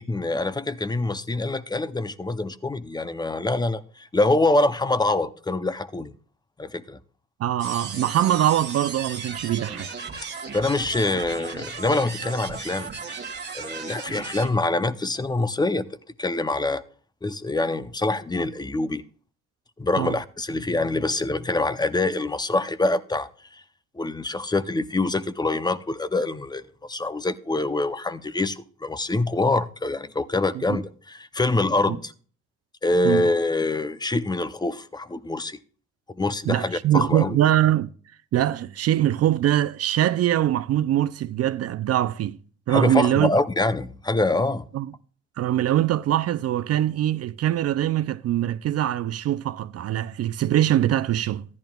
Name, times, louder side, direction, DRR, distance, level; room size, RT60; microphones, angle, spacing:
voice 1, 0.0-6.1 6.6-7.0 10.5-12.9 13.5-15.9 16.2-16.8 17.2-19.0 19.8-23.6 23.9-32.1 32.8-35.6 36.1-37.4 42.7-44.7, left 2 dB, 15° left, 0.5 m, -25 dB
voice 2, 7.4-9.9 20.0-20.2 30.7-30.8 31.9-32.0 33.0-33.2 36.5-37.9 38.3-42.4 42.7-43.3 44.7-44.9 45.4-51.5, right 12 dB, 55° right, 0.4 m, -23 dB
sound 1, 7.6-14.5, right 5 dB, 35° right, 1.6 m, -36 dB
14.0 x 10.5 x 2.3 m
cardioid pair, 90°, 30 cm